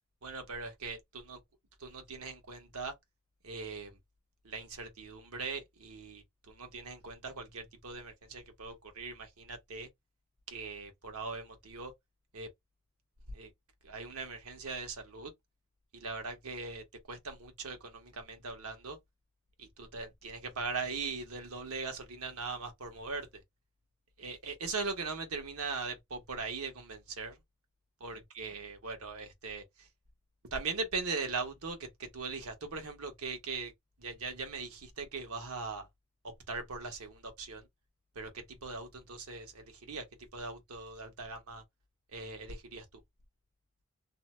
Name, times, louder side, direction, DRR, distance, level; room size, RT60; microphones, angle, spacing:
voice 1, 0.2-1.4 1.8-2.9 3.4-4.0 4.4-9.9 10.5-11.9 12.3-12.5 13.3-13.5 13.8-15.3 15.9-19.0 19.6-23.4 24.2-27.4 28.0-29.9 30.5-33.7 34.0-35.9 36.5-37.7 38.1-40.0 40.3-41.6 42.1-42.8, right 4 dB, 85° right, 1.1 m, -40 dB
2.7 x 2.1 x 3.0 m
head